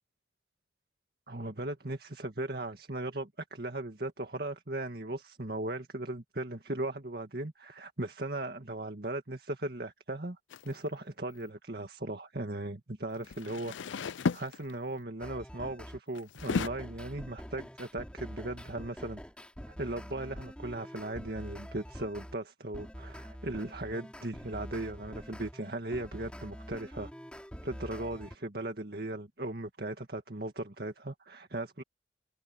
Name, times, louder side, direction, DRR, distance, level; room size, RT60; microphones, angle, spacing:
voice 1, 1.3-10.4 10.6-14.1 14.3-19.2 19.7-27.1 27.6-31.8, right 2 dB, 55° right, 2.1 m, -38 dB
sound 1, 10.5-10.8 13.1-15.0 16.1-16.7, left 5 dB, 90° left, 0.5 m, -33 dB
sound 2, 15.2-16.0 16.4-22.4 22.7-28.4, equal, 5° left, 4.1 m, -45 dB
head